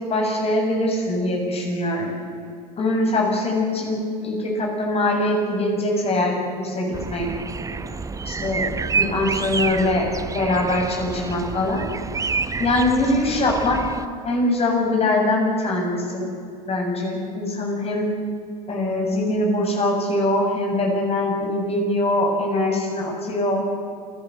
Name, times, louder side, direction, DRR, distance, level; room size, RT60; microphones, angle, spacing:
voice 1, 0.1-2.1 2.8-7.3 8.3-10.1 10.3-11.9 12.6-13.8 14.2-16.3 16.6-18.1 18.7-23.6, left 1 dB, 30° left, 1 dB, 7.5 m, -22 dB
sound 1, 6.9-14.1, right 4 dB, 15° right, 0.9 m, -28 dB
28.5 x 14.5 x 7.9 m, 2.4 s
hypercardioid pair, 90°, 20 cm